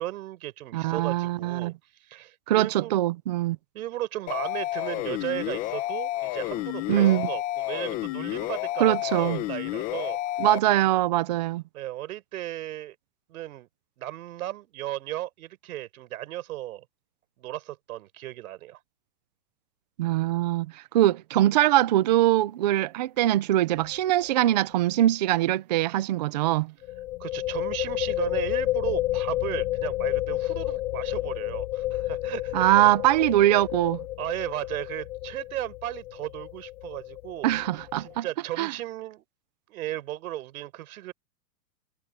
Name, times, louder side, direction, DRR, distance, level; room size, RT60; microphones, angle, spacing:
voice 1, 0.0-1.7 2.0-2.9 3.7-10.2 11.7-12.9 13.3-13.7 14.0-16.8 17.4-18.8 27.2-32.9 34.2-37.5 38.0-39.2 39.7-41.1, right 14 dB, 55° right, 4.8 m, -35 dB
voice 2, 0.7-1.7 2.5-3.6 6.9-7.3 8.8-9.4 10.4-11.6 20.0-26.7 32.5-34.0 37.4-38.3 38.6-38.7, right 14 dB, 25° right, 0.5 m, -22 dB
sound 1, 4.3-10.6, left 15 dB, 15° left, 0.7 m, -30 dB
sound 2, 23.7-24.0 24.2-24.3 26.8-38.2, left 16 dB, 50° left, 7.0 m, -31 dB
supercardioid pair, 160°, 49 cm